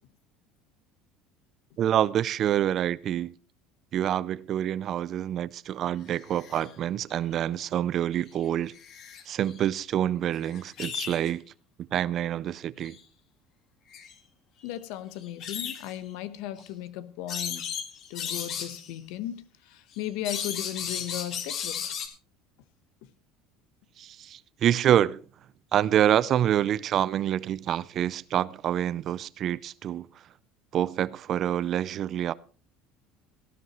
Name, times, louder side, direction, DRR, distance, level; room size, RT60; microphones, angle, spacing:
voice 1, 1.8-3.3 3.9-8.7 9.3-11.4 11.9-13.0 24.0-25.2 25.7-30.1 30.7-32.3, right 10 dB, 45° right, 0.5 m, -27 dB
sound 1, 6.1-6.7 8.3-8.4 8.7-9.6 10.3-11.3 12.8-13.0 13.9-14.1 15.2-16.0 16.6-16.7 17.3-18.9 19.9-22.1, left 8 dB, 55° left, 2.4 m, -35 dB
voice 2, 14.6-17.7 18.1-21.9, left 12 dB, 75° left, 1.0 m, -36 dB
18.0 x 12.0 x 3.1 m
supercardioid pair, 115°, 0 cm